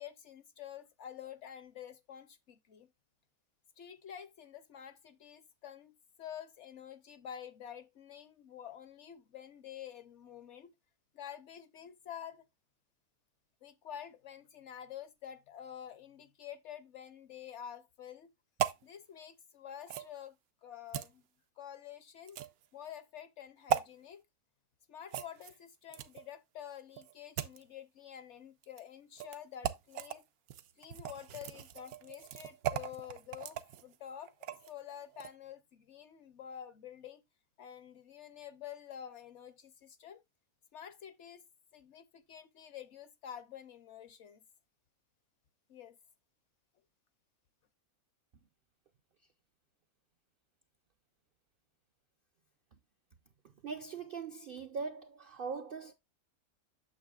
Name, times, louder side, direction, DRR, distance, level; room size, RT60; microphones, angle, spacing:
voice 1, 0.0-2.9 3.8-10.7 11.1-12.4 13.6-18.3 18.8-20.3 20.6-21.2 21.6-22.4 22.7-24.2 24.9-30.2 30.8-33.6 33.8-37.2 37.6-40.2 40.7-41.4 41.7-44.4 45.7-46.0, left 9 dB, 65° left, 0.8 m, -48 dB
sound 1, 18.6-18.8 19.9-20.1 20.9-21.1 22.3-22.7 23.7-23.9 25.1-26.3 27.0-27.6 28.6-28.8 29.2-29.4 29.6-30.2 30.5-34.7 35.1-35.3, right 10 dB, 85° right, 1.1 m, -37 dB
voice 2, 53.6-55.9, right 5 dB, 65° right, 0.5 m, -41 dB
8.7 x 6.9 x 2.3 m
omnidirectional pair, 1.5 m